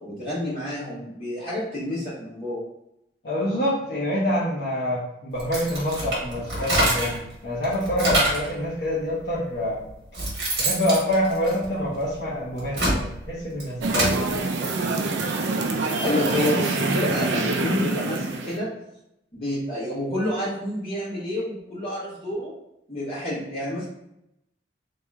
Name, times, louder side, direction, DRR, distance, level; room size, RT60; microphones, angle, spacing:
voice 1, 0.0-2.6 16.0-18.7 19.3-22.5 22.9-23.8, left 1 dB, 30° left, -14 dB, 1.5 m, -28 dB
voice 2, 3.2-9.8 10.6-14.1, equal, 65° left, -8 dB, 1.0 m, -26 dB
sound 1, 5.4-7.2 7.6-8.5 9.3-9.4 9.9-12.0 12.5-14.2, right 1 dB, 60° right, 1.2 m, -25 dB
sound 2, 13.8-18.6, right 3 dB, 80° right, 0.4 m, -25 dB
3.0 x 2.9 x 3.5 m, 0.83 s
head